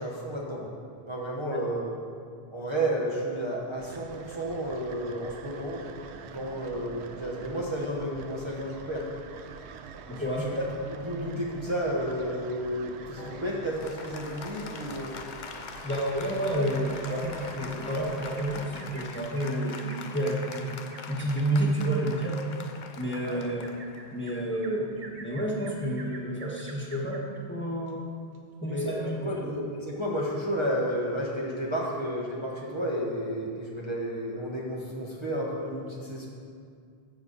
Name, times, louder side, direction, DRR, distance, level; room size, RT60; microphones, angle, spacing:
voice 1, 0.0-1.9 2.5-5.8 6.2-9.1 10.2-15.1 23.2-23.4 28.7-28.9 29.2-36.3, equal, 25° right, -5 dB, 1.2 m, -32 dB
sound 1, 3.8-18.7, right 5 dB, 85° right, 0.9 m, -46 dB
voice 2, 10.1-10.5 15.8-20.8 21.1-22.4 23.0-23.6 24.1-27.2 27.5-28.0 28.6-29.5, right 1 dB, 10° left, -4 dB, 1.5 m, -30 dB
Applause, 13.2-25.0, left 5 dB, 50° left, 0.7 m, -43 dB
Bird vocalization bird call bird song, 15.2-16.3 16.6-16.8 17.1-27.4 27.9-28.0 28.3-28.4, right 3 dB, 50° right, 1.1 m, -49 dB
13.5 x 7.8 x 4.0 m, 2.3 s
omnidirectional pair, 1.1 m